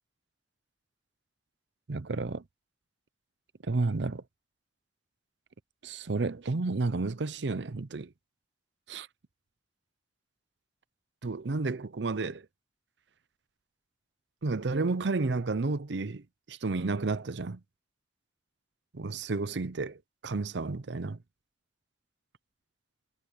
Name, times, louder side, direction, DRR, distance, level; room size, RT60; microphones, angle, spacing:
voice 1, 1.9-2.4 3.6-4.2 5.8-8.1 8.9-9.1 11.2-12.4 14.4-17.6 18.9-21.2, right 3 dB, 75° right, 0.7 m, -31 dB
head